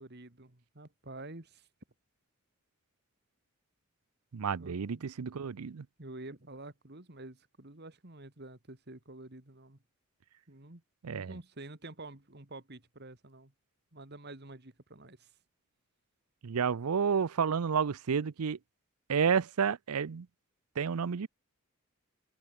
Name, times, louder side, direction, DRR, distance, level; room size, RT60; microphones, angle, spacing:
voice 1, 0.0-1.7 4.6-5.0 6.0-9.8 10.5-10.8 11.1-13.5 13.9-15.3, right 2 dB, 50° right, 2.2 m, -48 dB
voice 2, 4.3-5.8 11.0-11.3 16.4-18.6 19.1-20.3 20.8-21.3, right 6 dB, 85° right, 0.6 m, -30 dB
head